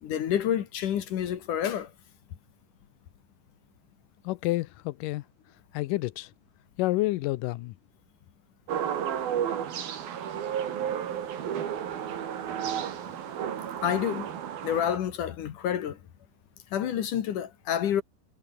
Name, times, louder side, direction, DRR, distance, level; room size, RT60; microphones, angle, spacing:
voice 1, 0.0-1.9 13.8-14.3 14.6-16.0 16.7-18.0, left 10 dB, 60° left, 2.8 m, -28 dB
voice 2, 4.2-5.2 5.7-6.3 6.8-7.8, left 19 dB, 90° left, 1.9 m, -29 dB
sound 1, 8.7-15.0, right 9 dB, 65° right, 4.2 m, -32 dB
omnidirectional pair, 4.6 m